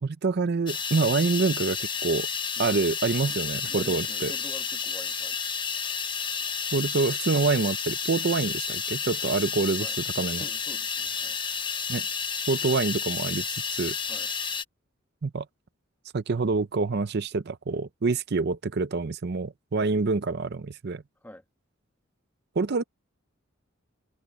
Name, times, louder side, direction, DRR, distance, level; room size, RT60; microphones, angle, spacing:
voice 1, 0.0-2.3 2.6-4.3 6.7-9.9 10.2-10.5 11.9-12.1 12.5-13.9 15.2-15.5 16.1-21.0 22.6-22.8, right 4 dB, 55° right, 0.6 m, -26 dB
sound 1, 0.7-14.6, left 6 dB, 25° left, 1.1 m, -31 dB
voice 2, 3.7-5.4 9.8-10.0 10.4-11.4 14.1-14.3 19.8-19.9 21.2-21.4, left 1 dB, 10° left, 1.6 m, -46 dB
head